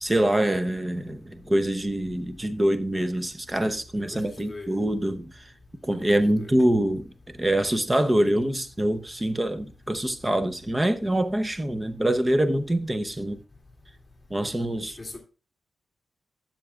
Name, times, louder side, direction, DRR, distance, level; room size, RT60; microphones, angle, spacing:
voice 1, 0.0-5.3 5.8-7.1 7.4-13.4 14.3-15.0, right 1 dB, 15° right, 0.7 m, -25 dB
voice 2, 4.1-4.8 6.0-6.6 15.0-15.2, left 2 dB, 15° left, 2.4 m, -41 dB
12.5 x 7.5 x 2.4 m
wide cardioid pair, 125°, 0 cm